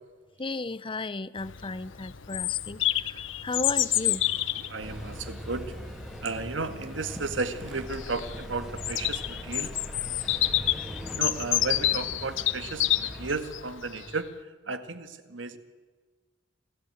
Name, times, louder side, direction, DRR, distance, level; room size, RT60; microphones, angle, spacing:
voice 1, 0.4-4.3, left 3 dB, 25° left, 17 dB, 0.7 m, -35 dB
Bird vocalization bird call bird song, 1.4-14.1, left 14 dB, 75° left, 0.9 m, -29 dB
sound 1, 3.7-6.0, right 2 dB, 55° right, 2.2 m, -52 dB
voice 2, 4.7-5.7 6.2-9.7 11.1-14.3 14.7-15.6, right 3 dB, 70° right, 9 dB, 1.9 m, -34 dB
sound 2, 4.8-13.3, equal, 5° right, 2.4 m, -41 dB
27.0 x 17.5 x 9.3 m, 1.4 s
head